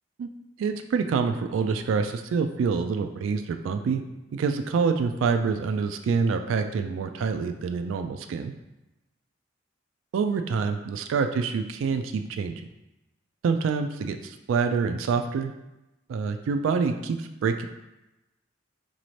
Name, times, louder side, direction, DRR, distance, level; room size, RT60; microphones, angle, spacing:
voice 1, 0.6-4.0 4.3-8.5 10.1-12.6 13.4-15.5 16.1-17.7, right 5 dB, 85° right, 6 dB, 0.3 m, -26 dB
4.1 x 2.6 x 3.1 m, 0.96 s
head